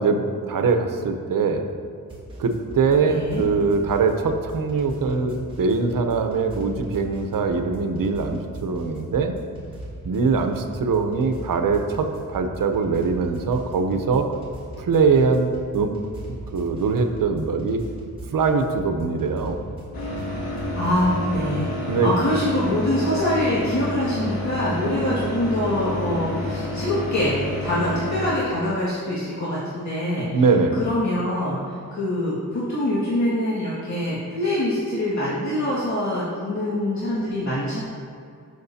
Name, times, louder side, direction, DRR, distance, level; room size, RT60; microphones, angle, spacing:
voice 1, 0.0-1.6 2.4-9.3 10.0-14.3 14.8-15.9 16.3-17.8 18.3-19.6 21.9-22.1 30.3-30.8, right 4 dB, 70° right, 6 dB, 0.9 m, -22 dB
sound 1, 2.1-21.4, right 1 dB, 15° right, 2.3 m, -39 dB
voice 2, 3.0-3.4 20.7-30.4 30.7-31.6 31.9-37.8, left 1 dB, 55° left, -10 dB, 2.1 m, -24 dB
sound 2, 19.9-28.3, left 1 dB, 80° left, 2.3 m, -29 dB
14.0 x 6.6 x 2.8 m, 2.4 s
wide cardioid pair, 100°, 34 cm